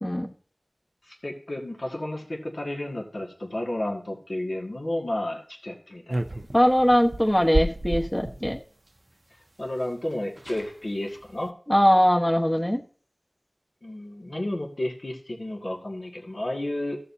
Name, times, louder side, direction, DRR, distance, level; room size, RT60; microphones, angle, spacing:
voice 1, 1.0-6.2 9.6-11.5 13.8-17.0, left 1 dB, 70° left, 0 dB, 2.0 m, -32 dB
sound 1, 6.1-8.6 9.8-9.9 10.1-10.2 10.4-10.7 11.2-11.5, right 2 dB, 55° right, 0.6 m, -31 dB
voice 2, 6.5-8.6 11.7-12.8, equal, 20° left, 2 dB, 1.1 m, -21 dB
15.0 x 6.7 x 2.7 m, 0.43 s
wide cardioid pair, 40°, 0 cm